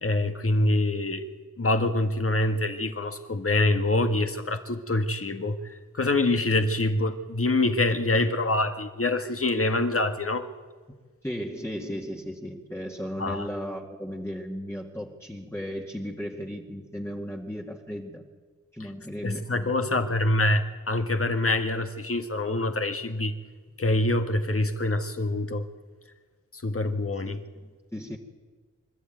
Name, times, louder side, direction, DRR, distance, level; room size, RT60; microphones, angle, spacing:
voice 1, 0.0-1.2 1.6-5.6 5.9-10.5 13.2-13.5 19.2-23.3 23.8-25.6 26.5-27.4, left 2 dB, 45° left, 7 dB, 1.8 m, -25 dB
voice 2, 11.2-18.3 18.7-19.5 27.3-28.2, equal, 10° left, -2 dB, 2.1 m, -35 dB
25.5 x 13.0 x 9.3 m, 1.4 s
wide cardioid pair, 75°, 31 cm